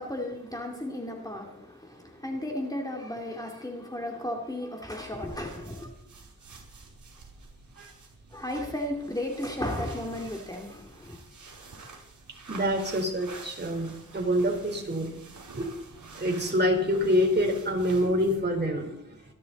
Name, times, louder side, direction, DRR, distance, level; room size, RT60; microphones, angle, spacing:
voice 1, 0.0-5.9 8.3-11.2, left 1 dB, 10° left, 1 dB, 2.3 m, -34 dB
sound 1, 5.0-18.5, right 3 dB, 65° right, 5.3 m, -49 dB
voice 2, 12.5-15.1 15.5-15.7 16.1-19.3, equal, 30° right, 1 dB, 4.2 m, -26 dB
26.0 x 11.0 x 4.2 m, 0.77 s
wide cardioid pair, 100°, 32 cm